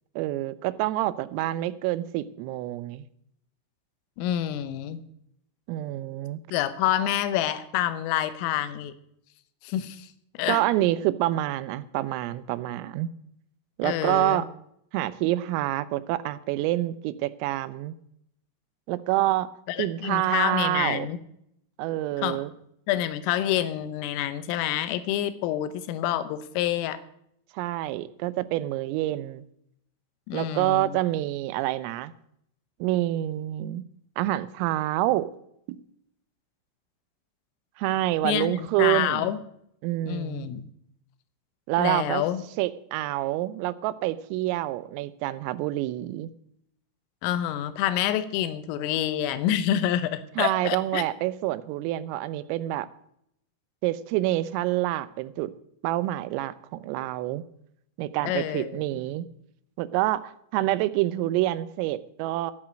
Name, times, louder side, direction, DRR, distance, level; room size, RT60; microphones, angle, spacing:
voice 1, 0.2-3.1 5.7-6.4 10.5-13.1 13.8-14.5 14.9-17.9 18.9-19.5 19.8-21.1 21.8-22.5 27.5-29.4 30.3-32.1 32.8-33.8 34.2-35.3 35.7-35.8 37.8-39.3 39.8-40.5 41.7-42.2 42.6-46.3 50.4-52.9 53.8-55.5 55.8-57.4 58.0-59.2 59.8-62.5, right 15 dB, 90° right, 15 dB, 3.3 m, -27 dB
voice 2, 4.2-5.0 6.5-8.9 9.6-10.1 10.4-10.6 13.8-14.4 19.7-21.2 22.2-22.4 22.9-27.0 30.3-31.0 38.2-39.4 40.1-40.7 41.8-42.4 47.2-51.0 58.2-58.8, left 12 dB, 85° left, 13 dB, 3.5 m, -27 dB
13.5 x 8.8 x 6.2 m, 0.73 s
omnidirectional pair, 5.9 m